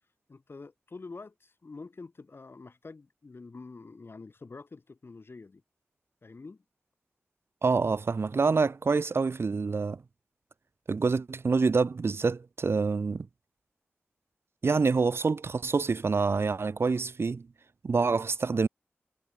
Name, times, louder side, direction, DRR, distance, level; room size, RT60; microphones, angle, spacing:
voice 1, 0.3-5.6 6.2-6.6, left 3 dB, 55° left, 2.5 m, -46 dB
voice 2, 7.6-10.0 10.9-13.3 14.6-17.5 17.8-18.7, right 4 dB, 65° right, 0.8 m, -26 dB
cardioid pair, 55°, 5 cm